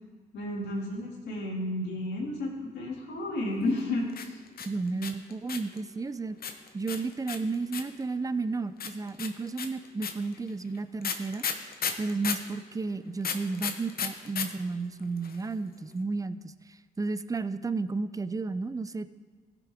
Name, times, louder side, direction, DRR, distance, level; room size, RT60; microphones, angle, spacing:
voice 1, 0.3-4.4, left 1 dB, 75° left, -3 dB, 2.3 m, -32 dB
sound 1, 4.1-5.8 6.4-8.0 8.8-12.5 13.2-14.5 14.7-14.8 15.0-15.5, left 7 dB, 60° left, 0.9 m, -33 dB
voice 2, 4.7-6.4 6.7-11.4 12.0-16.5 17.0-19.1, right 3 dB, 20° right, 13 dB, 0.5 m, -32 dB
15.5 x 6.0 x 3.5 m, 1.5 s
supercardioid pair, 60°, 18 cm